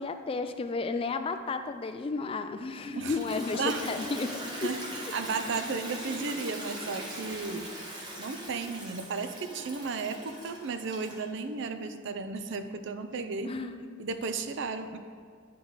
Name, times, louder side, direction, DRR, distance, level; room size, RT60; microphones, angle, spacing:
voice 1, 0.0-4.7 13.4-13.9, left 3 dB, 25° left, 8 dB, 0.3 m, -33 dB
Toilet flush, 2.8-11.4, equal, 20° right, 1.1 m, -40 dB
voice 2, 4.6-7.7 8.2-13.5 14.0-15.0, right 4 dB, 60° right, 9 dB, 0.5 m, -34 dB
10.0 x 4.8 x 3.9 m, 2.1 s
head